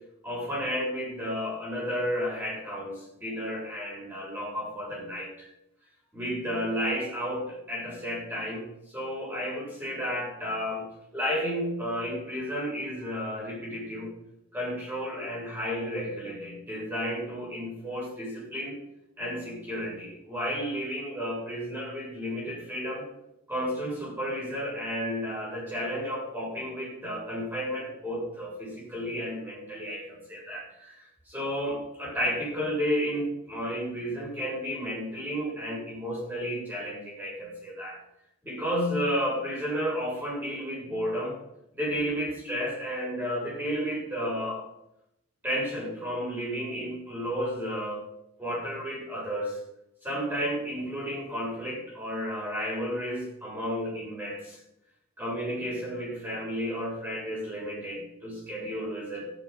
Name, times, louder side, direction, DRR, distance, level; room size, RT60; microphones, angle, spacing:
voice 1, 0.2-5.5 6.1-10.9 11.1-14.1 14.5-18.8 19.2-23.1 23.5-38.0 38.4-41.4 41.7-44.7 45.4-48.0 48.4-49.6 50.0-54.6 55.2-59.3, equal, 10° right, -4 dB, 6.7 m, -32 dB
14.5 x 12.0 x 5.3 m, 0.81 s
head